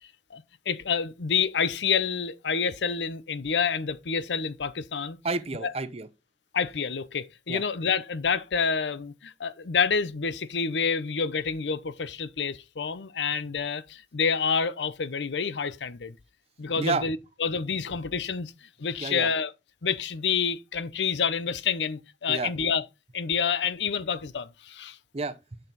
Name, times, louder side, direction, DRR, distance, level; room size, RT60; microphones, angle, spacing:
voice 1, 0.3-5.2 5.6-5.7 6.5-16.2 16.6-19.5 19.8-22.8 23.1-25.0, left 6 dB, 90° left, 0.7 m, -28 dB
voice 2, 5.2-6.1 7.5-7.6 16.8-17.0 19.0-19.3 22.3-22.5 25.1-25.6, right 3 dB, 35° right, 0.7 m, -30 dB
7.7 x 6.8 x 4.0 m
head